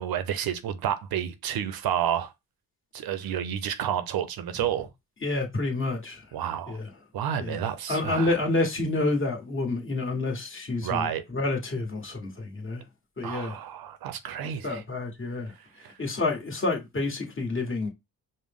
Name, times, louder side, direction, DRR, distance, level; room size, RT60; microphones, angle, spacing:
voice 1, 0.0-2.3 2.9-4.9 6.3-6.8 7.1-8.4 10.8-11.2 13.2-14.8 15.8-15.9, right 9 dB, 70° right, 0.6 m, -30 dB
voice 2, 5.2-6.2 6.7-6.9 7.4-7.6 7.9-12.8 13.2-13.6 14.6-15.5 16.0-17.9, left 2 dB, 35° left, 1.4 m, -28 dB
5.2 x 2.1 x 3.5 m
cardioid pair, 85°, 37 cm